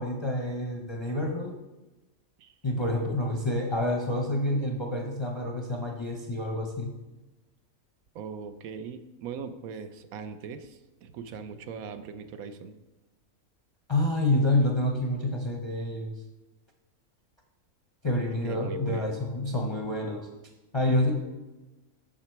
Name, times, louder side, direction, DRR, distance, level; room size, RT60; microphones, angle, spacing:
voice 1, 0.0-1.6 2.6-6.9 13.9-16.1 18.0-20.3 20.7-21.1, left 1 dB, 30° left, 3 dB, 0.5 m, -28 dB
voice 2, 8.1-12.7 18.4-19.2, right 6 dB, 80° right, 10 dB, 1.1 m, -40 dB
7.5 x 5.7 x 4.5 m, 1.1 s
omnidirectional pair, 1.5 m